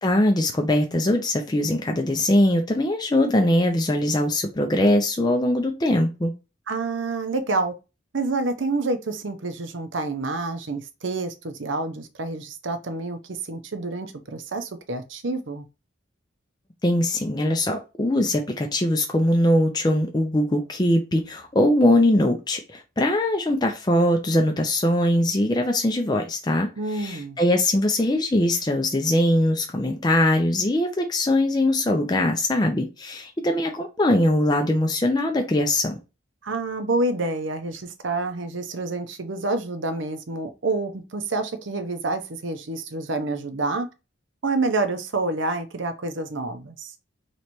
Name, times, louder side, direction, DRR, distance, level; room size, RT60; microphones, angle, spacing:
voice 1, 0.0-6.3 16.8-36.0, left 1 dB, 20° left, 0.5 m, -21 dB
voice 2, 6.7-7.7 8.1-15.7 26.8-27.4 36.4-43.9 44.4-46.9, right 3 dB, 70° right, 0.8 m, -28 dB
3.2 x 3.0 x 4.3 m
head